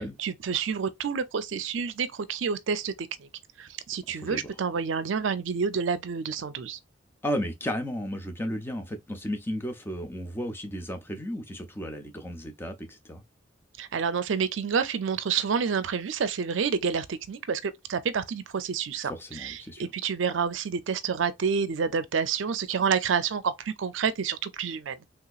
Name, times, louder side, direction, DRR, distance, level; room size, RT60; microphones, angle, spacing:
voice 1, 0.2-3.1 3.6-6.8 13.8-25.0, right 6 dB, 75° right, 0.5 m, -29 dB
voice 2, 4.1-4.5 7.2-13.2 19.0-19.9, equal, 10° left, 0.6 m, -34 dB
3.4 x 2.9 x 2.4 m
head